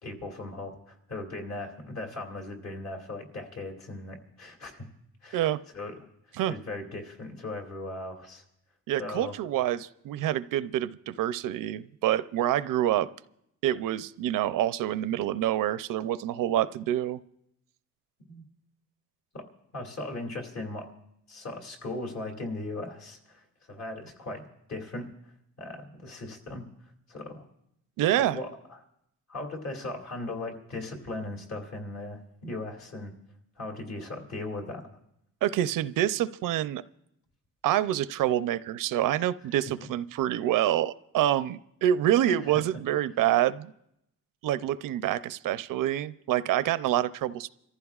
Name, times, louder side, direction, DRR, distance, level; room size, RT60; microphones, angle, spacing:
voice 1, 0.0-4.9 5.2-6.1 6.5-8.4 9.0-9.3 18.3-18.4 19.3-19.5 19.7-20.9 21.3-25.1 25.6-26.7 27.1-27.4 28.1-28.8 29.3-33.1 33.6-34.8 42.3-42.6, left 2 dB, 55° left, 1 dB, 2.5 m, -38 dB
voice 2, 8.9-13.1 13.6-17.2 28.0-28.4 35.4-36.8 37.6-43.7 44.4-47.5, right 12 dB, 80° right, 15 dB, 0.5 m, -27 dB
28.0 x 14.5 x 2.4 m, 0.78 s
cardioid pair, 150°, 32 cm